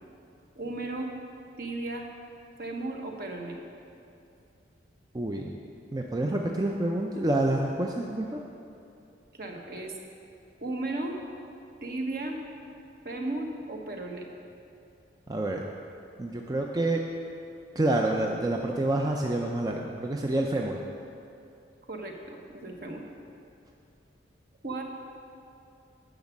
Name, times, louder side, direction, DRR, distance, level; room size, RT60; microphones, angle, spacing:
voice 1, 0.5-1.1 1.6-2.1 2.6-3.6 9.3-9.9 10.6-11.2 11.8-12.4 13.0-14.3 21.9-23.0 24.6-24.8, right 2 dB, 50° right, 2 dB, 1.1 m, -35 dB
voice 2, 5.1-5.5 5.9-8.4 15.3-15.6 16.2-17.0 17.8-20.8, right 1 dB, 20° right, 1 dB, 0.5 m, -28 dB
10.5 x 6.1 x 7.1 m, 2.6 s
head